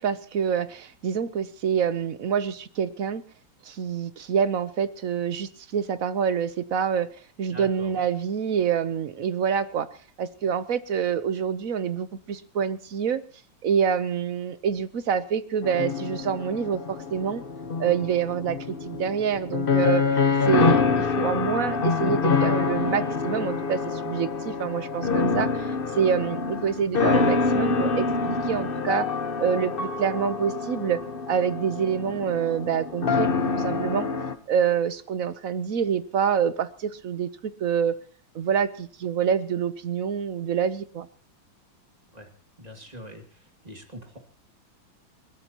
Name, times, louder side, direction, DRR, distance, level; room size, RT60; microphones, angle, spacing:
voice 1, 0.0-3.2 3.6-7.1 7.4-9.9 10.2-13.2 13.6-17.4 17.8-20.0 20.5-29.1 29.4-31.0 31.3-34.1 34.5-37.9 38.3-41.1, right 7 dB, 55° right, 13 dB, 1.0 m, -26 dB
voice 2, 7.5-7.9 42.1-42.3 42.6-44.2, equal, 20° right, 3 dB, 2.4 m, -43 dB
sound 1, 15.6-34.4, left 4 dB, 35° left, 0.9 m, -26 dB
29.0 x 13.5 x 3.0 m, 0.42 s
omnidirectional pair, 2.2 m